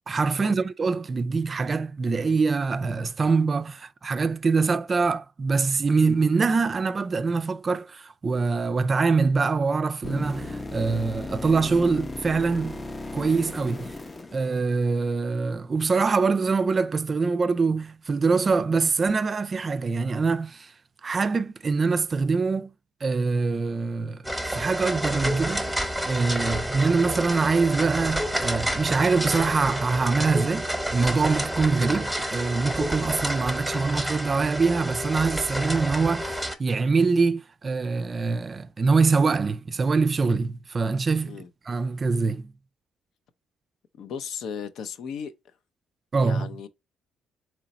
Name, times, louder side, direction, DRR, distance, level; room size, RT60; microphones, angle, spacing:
voice 1, 0.1-12.8 13.1-13.9 14.3-20.7 21.0-22.7 23.0-25.7 26.1-42.5 46.1-46.5, right 4 dB, 35° right, 0.4 m, -24 dB
sound 1, 10.0-15.1 19.1-19.2, left 2 dB, 25° left, 0.5 m, -36 dB
sound 2, 24.2-36.5, equal, ahead, 1.0 m, -29 dB
voice 2, 44.0-45.3 46.2-46.7, left 7 dB, 70° left, 0.5 m, -36 dB
3.9 x 3.1 x 4.1 m
cardioid pair, 85°, 0 cm